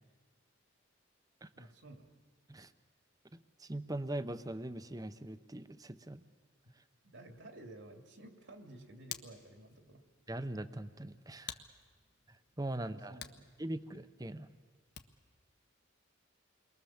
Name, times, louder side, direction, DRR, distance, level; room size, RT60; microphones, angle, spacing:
voice 1, 1.5-2.1 7.0-10.0 12.7-13.5, right 1 dB, 70° right, 5 dB, 2.4 m, -53 dB
voice 2, 3.3-6.2 10.3-11.6 12.6-13.2 13.6-14.5, right 1 dB, 20° right, 12 dB, 0.8 m, -41 dB
Hands, 8.5-15.4, left 9 dB, 55° left, 1.2 m, -53 dB
29.0 x 22.5 x 7.2 m, 1.5 s
head